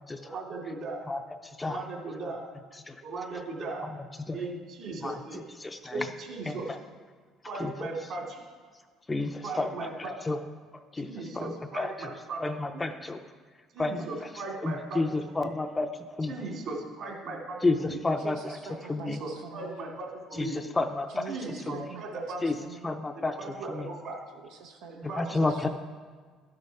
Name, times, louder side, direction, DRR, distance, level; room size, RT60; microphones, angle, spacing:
voice 1, 0.2-1.1 1.6-2.5 3.0-3.9 4.3-5.4 5.9-6.7 7.5-8.4 9.4-10.2 11.0-12.4 12.7-12.9 13.7-15.0 15.4-15.5 16.3-17.6 17.8-18.0 19.0-20.6 21.3-22.4 23.1-24.2 25.1-25.4 25.6-25.7, right 3 dB, 55° right, -1 dB, 2.6 m, -37 dB
voice 2, 5.6-6.1 6.5-6.8 7.6-7.9 9.1-10.4 10.9-11.1 11.3-11.9 12.4-13.2 13.8-14.1 14.6-15.9 16.2-16.4 17.6-18.6 18.9-19.2 20.3-21.3 21.7-21.9 22.4-22.6 22.8-23.4 23.7-23.9 25.1-25.7, left 3 dB, 15° left, 7 dB, 0.5 m, -30 dB
voice 3, 18.2-19.8 21.1-23.0 24.3-25.7, right 5 dB, 85° right, 2 dB, 0.8 m, -45 dB
12.0 x 6.7 x 4.8 m, 1.5 s
cardioid pair, 120°, 0 cm